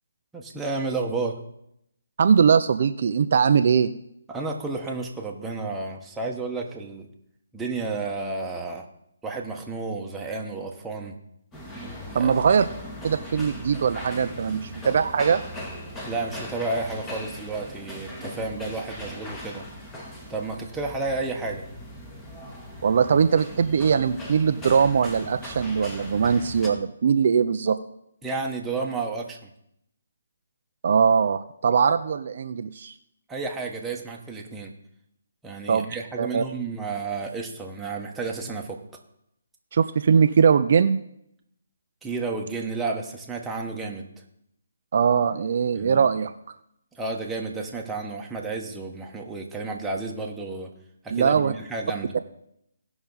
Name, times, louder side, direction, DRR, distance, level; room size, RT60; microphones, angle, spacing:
voice 1, 0.3-1.4 4.3-7.1 7.5-8.9 9.2-11.1 12.1-12.3 16.0-19.6 20.3-21.6 28.2-29.5 33.3-34.7 35.4-39.0 42.0-44.1 45.7-46.1 46.9-50.7 51.0-52.1, right 3 dB, 5° right, -1 dB, 1.3 m, -31 dB
voice 2, 2.2-3.9 12.1-12.7 13.0-15.4 22.8-27.8 30.8-32.9 35.7-35.9 36.2-36.4 39.7-41.0 44.9-46.3 51.1-51.5, right 6 dB, 55° right, 9 dB, 0.5 m, -21 dB
sound 1, 11.5-26.7, equal, 10° left, 1.7 m, -39 dB
17.5 x 5.9 x 4.0 m, 0.76 s
figure-of-eight pair, 150°, 0 cm